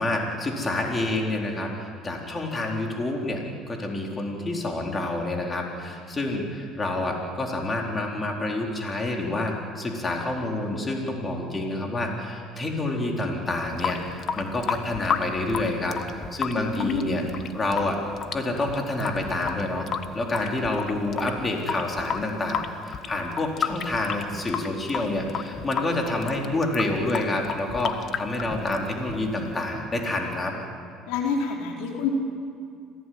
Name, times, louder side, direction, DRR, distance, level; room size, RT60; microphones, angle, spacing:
voice 1, 0.0-17.2 17.5-18.0 18.3-19.9 20.1-30.5, left 2 dB, 25° left, 0 dB, 4.2 m, -28 dB
Water tap faucet / Sink (filling or washing) / Drip, 13.6-29.5, left 7 dB, 50° left, 1.4 m, -33 dB
voice 2, 16.5-17.1 31.1-32.1, left 5 dB, 80° left, 0 dB, 4.4 m, -28 dB
27.0 x 17.5 x 9.5 m, 2.3 s
supercardioid pair, 95°, 0 cm